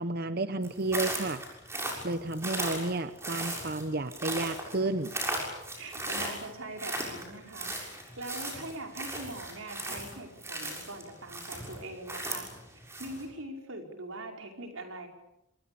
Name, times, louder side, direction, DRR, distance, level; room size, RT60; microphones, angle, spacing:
voice 1, 0.0-1.4 2.0-5.1, right 2 dB, 50° right, 10 dB, 0.9 m, -31 dB
sound 1, 0.6-13.2, right 1 dB, 15° right, 6.7 m, -37 dB
voice 2, 5.7-15.1, right 2 dB, 90° right, 3 dB, 5.4 m, -42 dB
27.0 x 26.5 x 7.1 m, 0.86 s
head